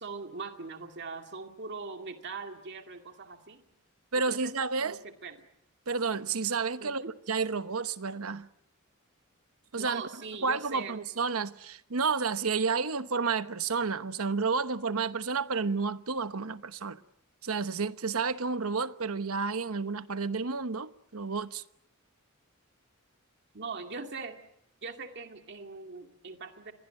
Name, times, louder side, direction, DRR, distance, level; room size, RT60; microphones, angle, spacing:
voice 1, 0.0-3.6 4.3-5.5 6.8-7.1 9.8-11.0 23.5-24.4 24.8-26.7, right 4 dB, 55° right, 2.3 m, -41 dB
voice 2, 4.1-5.0 5.9-8.5 9.7-10.0 10.4-17.0 17.4-21.6, right 4 dB, 80° right, 1.1 m, -31 dB
28.0 x 22.5 x 7.8 m
head